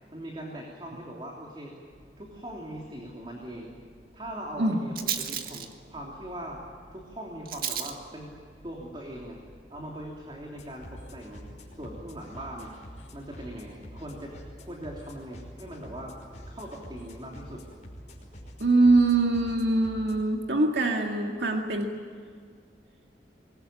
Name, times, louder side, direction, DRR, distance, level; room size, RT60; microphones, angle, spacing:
voice 1, 0.1-1.8 2.2-3.8 4.1-6.6 6.9-8.3 8.6-9.4 9.7-12.7 13.1-14.3 14.6-16.1 16.5-17.6, right 1 dB, 30° right, -1 dB, 3.2 m, -40 dB
Rattle, 1.9-11.9, right 8 dB, 55° right, 1.9 m, -40 dB
sound 1, 10.6-20.2, equal, 45° left, 5.6 m, -46 dB
voice 2, 18.6-21.9, right 2 dB, 80° right, 2 dB, 2.0 m, -23 dB
25.0 x 21.5 x 8.9 m, 2.1 s
head